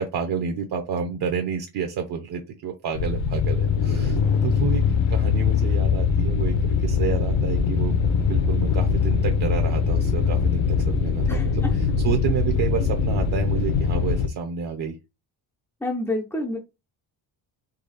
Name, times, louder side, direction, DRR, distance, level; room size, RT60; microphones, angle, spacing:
voice 1, 0.0-4.8 5.1-7.9 8.3-15.0, right 7 dB, 55° right, 5 dB, 0.8 m, -29 dB
sound 1, 3.0-14.3, left 6 dB, 75° left, 1.0 m, -22 dB
voice 2, 11.3-11.7 15.8-16.6, left 2 dB, 5° left, 0 dB, 0.4 m, -28 dB
4.1 x 3.2 x 4.0 m, 0.25 s
cardioid pair, 175°, 47 cm